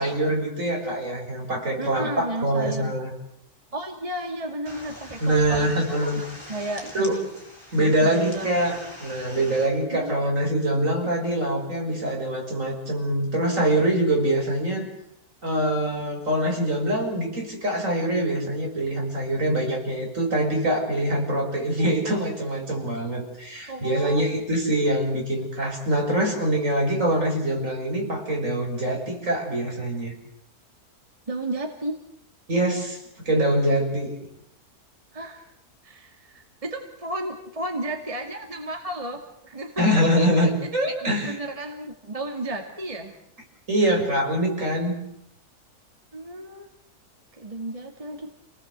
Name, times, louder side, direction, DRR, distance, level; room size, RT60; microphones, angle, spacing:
voice 1, 0.0-3.1 5.2-6.2 6.9-7.2 7.7-14.9 15.4-30.1 32.5-34.1 39.8-41.4 43.7-45.0, right 1 dB, 55° right, 1 dB, 6.2 m, -24 dB
voice 2, 1.8-2.9 3.7-7.3 7.8-8.6 9.9-10.1 23.7-24.2 31.3-32.0 35.1-35.5 35.8-40.0 41.0-43.2 46.1-46.7 47.4-48.3, right 1 dB, 20° right, 3 dB, 2.2 m, -33 dB
sound 1, 4.7-9.7, left 1 dB, 15° left, 7.3 m, -43 dB
29.0 x 19.0 x 8.1 m, 0.75 s
omnidirectional pair, 1.6 m